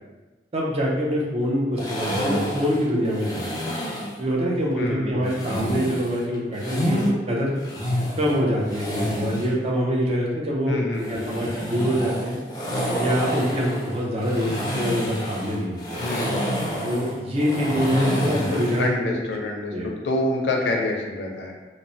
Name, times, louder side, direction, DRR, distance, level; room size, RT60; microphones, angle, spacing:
voice 1, 0.5-3.4 4.2-7.6 8.2-10.8 11.1-12.4 13.0-16.0 16.8-19.1 19.7-19.9, equal, 35° right, -3 dB, 0.5 m, -25 dB
sound 1, 1.8-4.2 5.3-7.1 7.5-9.5 10.9-18.9, equal, 20° left, 0.4 m, -28 dB
voice 2, 4.8-5.6 10.7-11.5 16.0-16.4 18.8-21.5, left 2 dB, 75° left, 0 dB, 0.5 m, -27 dB
3.0 x 2.0 x 2.6 m, 1.2 s
head